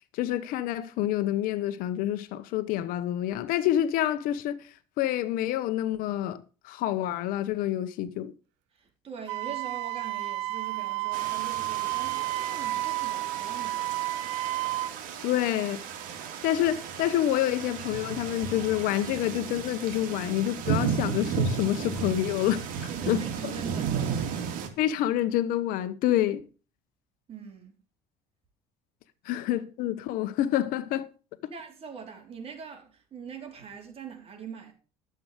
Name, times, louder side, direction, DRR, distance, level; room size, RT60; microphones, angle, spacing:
voice 1, 0.1-4.7 5.0-8.3 15.2-15.8 16.4-23.2 24.8-26.4 29.2-31.1 31.4-31.5, left 12 dB, 70° left, 1.0 m, -28 dB
voice 2, 8.7-14.4 22.9-24.4 27.3-27.8 29.3-29.4 31.5-34.7, right 6 dB, 40° right, 3.9 m, -43 dB
Wind instrument woodwind instrument, 9.3-14.9, right 18 dB, 90° right, 0.5 m, -31 dB
sound 1, 11.1-24.7, right 7 dB, 65° right, 2.3 m, -34 dB
11.5 x 7.8 x 5.1 m
supercardioid pair, 90°, 15 cm